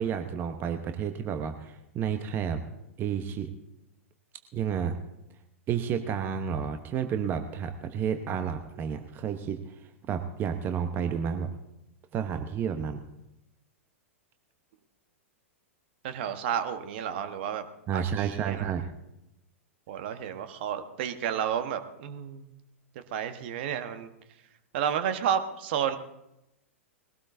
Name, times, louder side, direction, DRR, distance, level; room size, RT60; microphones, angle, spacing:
voice 1, 0.0-2.6 3.0-3.5 4.5-5.0 5.7-9.7 10.1-11.5 12.1-13.0 17.9-18.9, right 7 dB, 25° right, 7 dB, 1.0 m, -31 dB
voice 2, 16.0-17.6 17.9-18.7 19.9-22.5 22.9-24.1 24.7-26.0, right 8 dB, 50° right, 9 dB, 1.3 m, -31 dB
21.5 x 17.0 x 2.7 m, 0.86 s
figure-of-eight pair, 100°, 7 cm